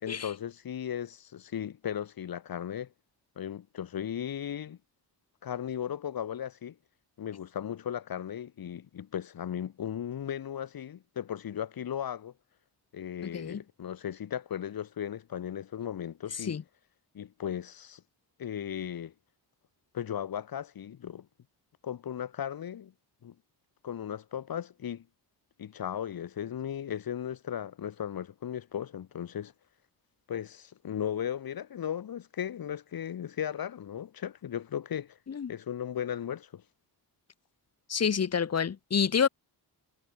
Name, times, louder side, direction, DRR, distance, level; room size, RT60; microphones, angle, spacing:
voice 1, 0.0-2.9 3.3-4.8 5.4-6.7 7.2-12.3 12.9-16.6 17.1-18.0 18.4-19.1 19.9-21.3 21.8-22.9 23.2-23.3 23.8-25.1 25.6-29.5 30.3-35.2 35.5-36.6, left 9 dB, 60° left, 1.7 m, -36 dB
voice 2, 37.9-39.3, left 7 dB, 35° left, 1.4 m, -28 dB
wide cardioid pair, 165°, 41 cm